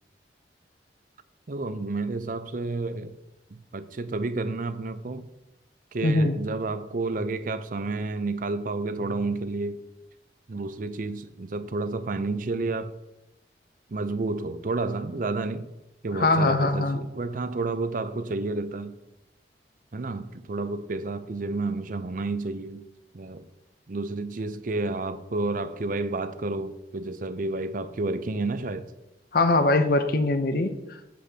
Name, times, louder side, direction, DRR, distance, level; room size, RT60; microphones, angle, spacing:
voice 1, 1.5-3.2 3.5-5.2 5.9-9.8 10.5-12.9 13.9-15.7 16.0-19.0 19.9-22.8 23.1-23.5 23.9-28.9, right 3 dB, 50° right, 0.5 m, -30 dB
voice 2, 6.0-6.4 16.1-17.0 29.3-31.1, left 2 dB, 55° left, 0.7 m, -22 dB
8.4 x 7.8 x 2.8 m
head